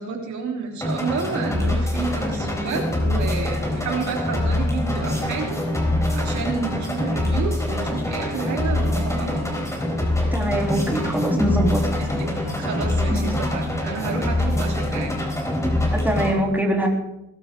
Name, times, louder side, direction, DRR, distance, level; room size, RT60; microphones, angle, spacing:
voice 1, 0.0-5.6 6.1-9.5 11.9-15.2 15.9-16.0 16.8-16.9, right 5 dB, 70° right, 1 dB, 3.6 m, -30 dB
sound 1, 0.8-16.3, left 1 dB, 10° left, 4.2 m, -24 dB
voice 2, 10.2-11.8 13.1-13.3 15.9-16.9, right 1 dB, 5° right, -1 dB, 3.5 m, -23 dB
21.0 x 12.5 x 3.8 m, 0.88 s
cardioid pair, 90°, 30 cm